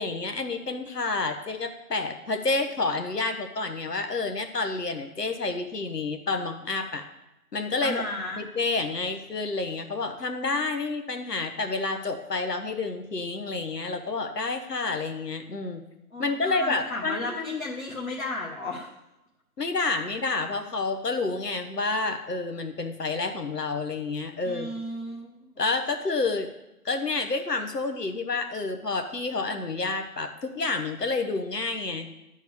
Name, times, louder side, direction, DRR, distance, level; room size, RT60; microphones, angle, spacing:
voice 1, 0.0-7.0 7.5-8.0 8.4-15.8 16.2-17.6 19.6-24.7 25.6-26.5 26.8-32.1, left 3 dB, 85° left, 6 dB, 1.4 m, -29 dB
voice 2, 7.8-8.4 16.1-18.9 24.4-25.3, left 2 dB, 60° left, -4 dB, 1.8 m, -34 dB
12.0 x 4.6 x 7.1 m, 0.92 s
figure-of-eight pair, 180°, 47 cm